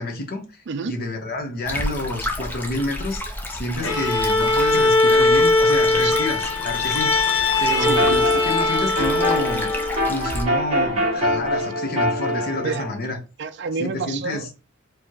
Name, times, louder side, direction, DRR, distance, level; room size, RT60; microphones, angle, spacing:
voice 1, 0.0-7.2 7.6-9.7 10.1-13.2 13.8-14.4, left 2 dB, 45° left, 1.1 m, -29 dB
Stream, 1.6-10.4, left 1 dB, 10° left, 0.7 m, -32 dB
Bowed string instrument, 3.8-10.1, left 2 dB, 75° left, 1.0 m, -20 dB
sound 1, 7.7-12.9, equal, 30° right, 2.2 m, -25 dB
voice 2, 13.4-14.6, right 5 dB, 55° right, 0.4 m, -29 dB
4.6 x 3.2 x 2.9 m
head